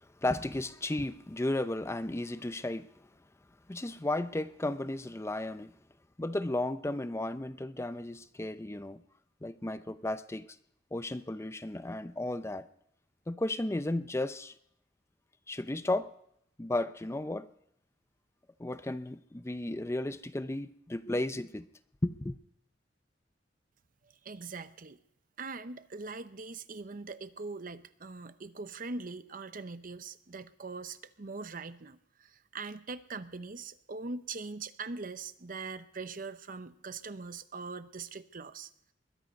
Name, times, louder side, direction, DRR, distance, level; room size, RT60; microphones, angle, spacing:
voice 1, 0.2-2.9 3.7-5.7 6.2-9.0 9.4-10.5 10.9-12.7 13.3-14.5 15.5-16.1 16.6-17.5 18.6-21.7 22.0-22.4, left 1 dB, 15° left, 0.5 m, -34 dB
voice 2, 24.2-25.0 25.4-38.7, right 4 dB, 50° right, 0.8 m, -42 dB
21.5 x 12.0 x 5.3 m
head